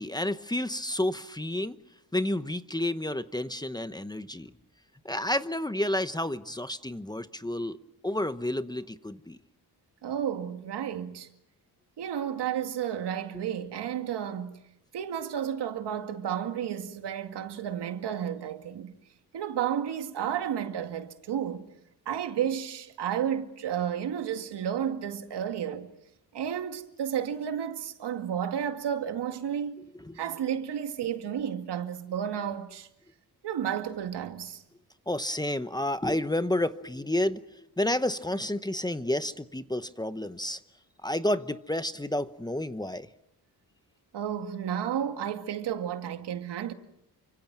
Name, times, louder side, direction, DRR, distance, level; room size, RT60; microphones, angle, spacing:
voice 1, 0.0-1.8 2.1-4.5 5.0-7.8 8.0-9.4 13.3-13.4 30.0-30.2 35.1-40.6 41.0-43.1, left 1 dB, 10° left, 0.9 m, -30 dB
voice 2, 10.0-11.3 12.0-14.6 14.9-18.9 19.3-21.6 22.1-25.9 26.3-29.8 30.1-32.9 33.4-34.6 44.1-46.7, right 9 dB, 85° right, 2.2 m, -32 dB
29.5 x 25.0 x 6.1 m
cardioid pair, 105°, 40 cm